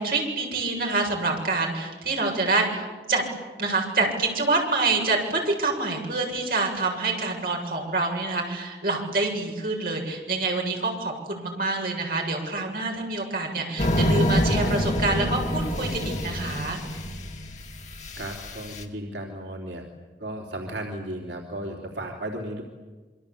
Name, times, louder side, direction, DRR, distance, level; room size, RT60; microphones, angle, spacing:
voice 1, 0.0-3.2 3.6-16.8, right 3 dB, 55° right, 1 dB, 7.3 m, -26 dB
sound 1, 13.8-18.8, equal, 40° left, 2.4 m, -26 dB
voice 2, 18.1-19.8 20.2-22.6, right 1 dB, 85° right, 0 dB, 3.5 m, -34 dB
28.0 x 24.0 x 8.6 m, 1.3 s
head